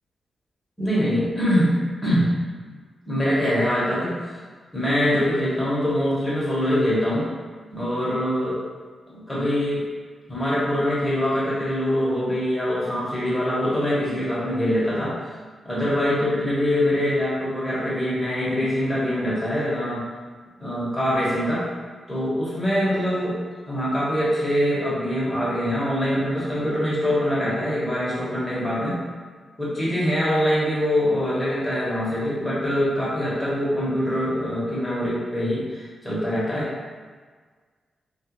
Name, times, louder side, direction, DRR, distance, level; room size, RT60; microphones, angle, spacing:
voice 1, 0.8-2.3 3.1-4.2 4.7-7.3 7.7-8.6 9.1-9.9 10.3-15.2 15.6-20.0 20.6-21.7 22.1-23.4 23.7-29.0 29.6-36.7, equal, 15° left, -8 dB, 1.1 m, -23 dB
3.2 x 2.4 x 3.0 m, 1.5 s
wide cardioid pair, 125°, 0 cm